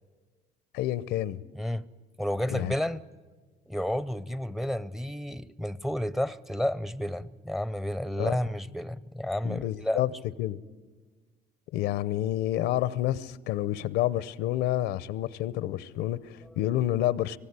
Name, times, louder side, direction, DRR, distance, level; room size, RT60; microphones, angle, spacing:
voice 1, 0.7-1.4 2.5-2.7 8.2-8.4 9.4-10.1 10.4-10.6 11.7-17.4, left 13 dB, 85° left, 0.8 m, -29 dB
voice 2, 1.5-1.8 2.2-3.0 3.7-10.2 16.4-16.6, left 1 dB, ahead, 0.6 m, -31 dB
25.0 x 17.0 x 9.7 m
cardioid pair, 110°, 17 cm